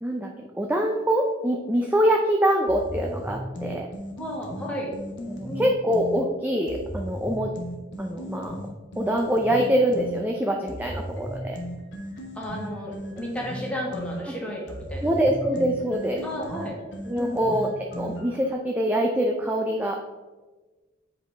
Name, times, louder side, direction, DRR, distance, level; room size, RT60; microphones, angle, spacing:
voice 1, 0.0-3.9 5.3-7.5 8.0-8.5 9.0-11.6 15.0-16.3 17.1-20.0, equal, 10° right, 1 dB, 0.4 m, -24 dB
sound 1, 2.7-6.2 6.7-10.2 10.7-18.5, equal, 65° left, 1.2 m, -36 dB
voice 2, 4.2-4.9 5.4-5.7 12.3-15.1 16.2-16.8 17.1-17.4, equal, 5° left, -3 dB, 1.4 m, -33 dB
7.7 x 4.8 x 3.4 m, 1.3 s
head